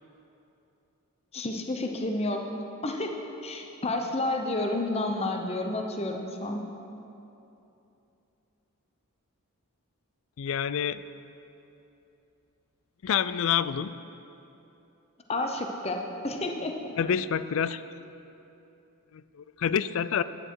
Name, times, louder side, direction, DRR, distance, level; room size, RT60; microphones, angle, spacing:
voice 1, 1.3-2.6 2.8-3.1 3.4-6.6 15.3-16.9, left 2 dB, 25° left, 3 dB, 0.7 m, -30 dB
voice 2, 10.4-11.0 13.0-13.9 17.0-17.8 19.1-20.2, left 8 dB, 65° left, 15 dB, 0.4 m, -27 dB
12.0 x 10.0 x 4.7 m, 2.9 s
head